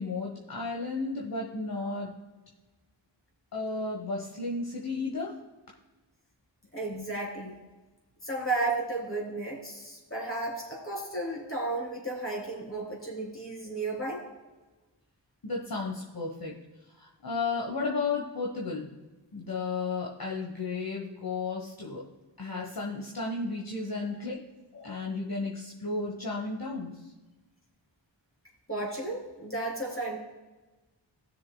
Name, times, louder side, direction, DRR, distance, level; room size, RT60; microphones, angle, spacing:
voice 1, 0.0-2.1 3.5-5.4 15.4-16.6 16.9-18.9 19.3-22.0 22.4-24.4 24.7-26.9, left 3 dB, 50° left, -1 dB, 1.3 m, -33 dB
voice 2, 6.7-7.6 8.2-14.2 28.7-30.2, right 2 dB, 30° left, -2 dB, 3.4 m, -33 dB
17.0 x 6.8 x 2.3 m, 1.2 s
wide cardioid pair, 60°, 46 cm